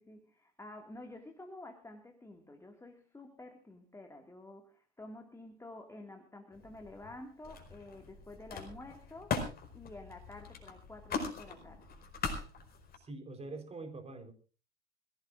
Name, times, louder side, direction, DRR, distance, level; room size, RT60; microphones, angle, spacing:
voice 1, 0.0-11.9, left 2 dB, 10° left, 3 dB, 2.1 m, -50 dB
Camera, 6.5-7.1 7.4-13.0, left 4 dB, 30° left, 5.2 m, -41 dB
voice 2, 12.9-14.3, right 3 dB, 20° right, 6 dB, 4.1 m, -44 dB
25.0 x 17.0 x 2.5 m, 0.36 s
hypercardioid pair, 90°, 33 cm